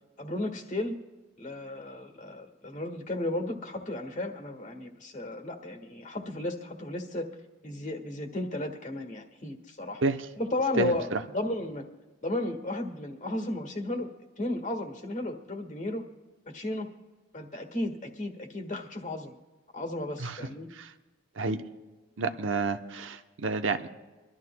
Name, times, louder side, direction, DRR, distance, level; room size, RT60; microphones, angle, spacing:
voice 1, 0.2-0.9 1.4-7.3 7.6-10.0 10.4-11.1 11.3-11.9 12.2-14.1 14.4-16.0 16.5-16.9 17.3-19.4 19.7-20.7, left 1 dB, 35° left, 4 dB, 1.5 m, -34 dB
voice 2, 10.8-11.2 20.2-20.4 20.7-20.9 21.4-21.6 22.2-23.9, right 3 dB, 70° right, 8 dB, 0.8 m, -29 dB
25.0 x 13.0 x 2.2 m, 1.2 s
head